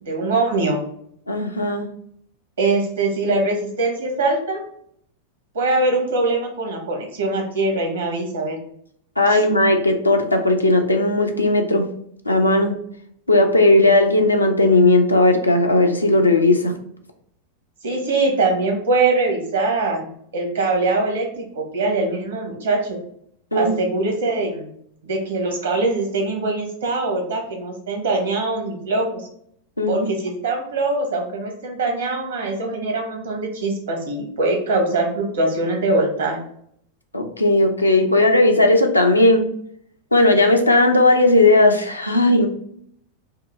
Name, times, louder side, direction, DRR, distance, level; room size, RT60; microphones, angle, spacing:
voice 1, 0.0-0.8 2.6-4.6 5.5-8.6 9.3-9.4 17.8-20.1 20.3-23.0 23.5-24.7 25.0-29.2 29.9-36.4, right 2 dB, 65° right, 2 dB, 1.1 m, -22 dB
voice 2, 1.3-1.9 9.2-11.9 12.3-12.8 13.3-16.7 23.5-23.7 29.8-30.1 37.1-39.5 40.1-42.5, left 2 dB, 85° left, 3 dB, 0.5 m, -16 dB
4.7 x 2.1 x 3.4 m, 0.67 s
figure-of-eight pair, 90°, 0 cm